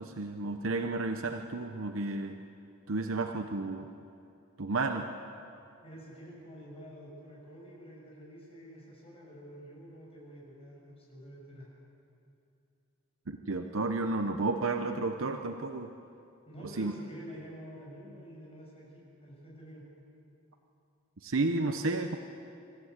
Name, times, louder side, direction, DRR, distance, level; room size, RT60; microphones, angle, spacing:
voice 1, 0.0-2.4 2.9-3.9 4.6-5.1 13.3-15.9 16.8-16.9 21.2-22.2, right 3 dB, 70° right, 6 dB, 0.9 m, -32 dB
voice 2, 5.8-11.7 16.5-19.9, equal, 30° left, -4 dB, 6.7 m, -48 dB
26.5 x 14.5 x 8.2 m, 2.6 s
head